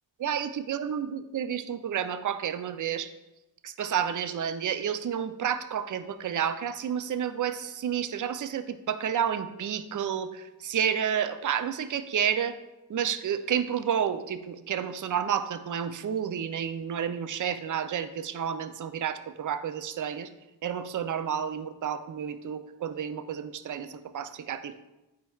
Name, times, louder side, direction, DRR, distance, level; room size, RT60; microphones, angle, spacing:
voice 1, 0.2-3.1 3.6-12.5 12.9-20.3 20.6-24.8, right 8 dB, 45° right, 11 dB, 0.5 m, -30 dB
9.2 x 4.6 x 2.3 m, 0.98 s
cardioid pair, 45°, 45 cm